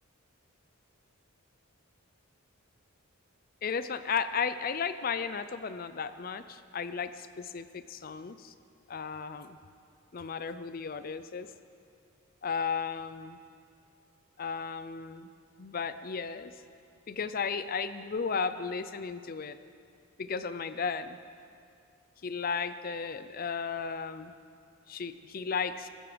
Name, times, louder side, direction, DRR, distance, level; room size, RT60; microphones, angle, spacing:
voice 1, 3.6-8.5 8.9-9.6 10.1-11.5 12.4-13.4 14.4-15.3 15.6-16.5 17.1-19.6 20.2-21.2 22.2-24.3 24.9-25.9, left 5 dB, 40° left, 12 dB, 0.5 m, -34 dB
15.5 x 13.5 x 5.1 m, 2.3 s
head